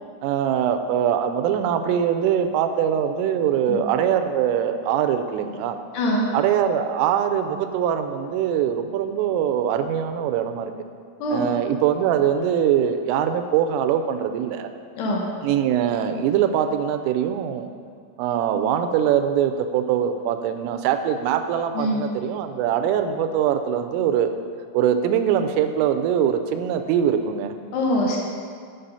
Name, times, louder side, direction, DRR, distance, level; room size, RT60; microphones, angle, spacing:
voice 1, 0.2-5.8 6.3-10.7 11.3-14.7 15.4-17.7 18.2-24.3 24.7-27.6, right 9 dB, 85° right, 7 dB, 3.1 m, -22 dB
voice 2, 27.7-28.2, left 1 dB, 70° left, -2 dB, 3.0 m, -23 dB
8.9 x 7.2 x 5.5 m, 2.1 s
omnidirectional pair, 5.9 m